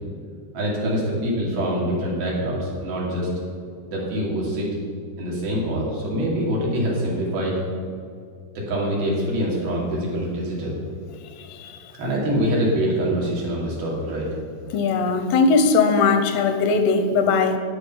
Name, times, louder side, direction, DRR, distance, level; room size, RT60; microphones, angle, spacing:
voice 1, 0.5-3.3 3.9-4.7 5.2-7.5 8.7-10.8 12.0-14.3, equal, 75° right, -4 dB, 4.7 m, -24 dB
voice 2, 11.4-11.8 14.7-17.6, left 4 dB, 85° left, 7 dB, 2.9 m, -19 dB
11.5 x 9.5 x 5.5 m, 2.2 s
omnidirectional pair, 4.5 m